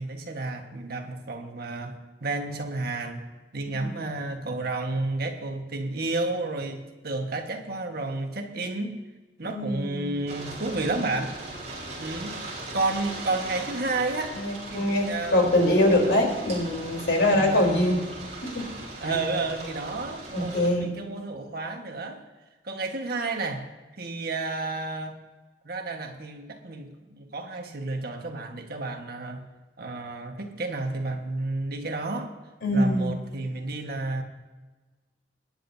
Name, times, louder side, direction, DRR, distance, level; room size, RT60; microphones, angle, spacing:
voice 1, 0.0-3.2 3.5-9.0 9.4-11.4 12.0-14.4 14.7-15.4 17.3-18.0 19.0-22.2 22.6-23.7 24.0-25.2 25.6-29.5 29.8-32.3 32.7-34.2, right 2 dB, 60° right, 3 dB, 1.5 m, -31 dB
voice 2, 9.4-10.2 14.3-18.0 18.4-18.7 19.0-19.1 20.3-20.9 32.6-33.1, left 1 dB, 75° left, 1 dB, 3.9 m, -23 dB
sound 1, 10.3-20.7, right 2 dB, 40° right, 4.5 m, -39 dB
24.0 x 10.0 x 2.8 m, 1.2 s
head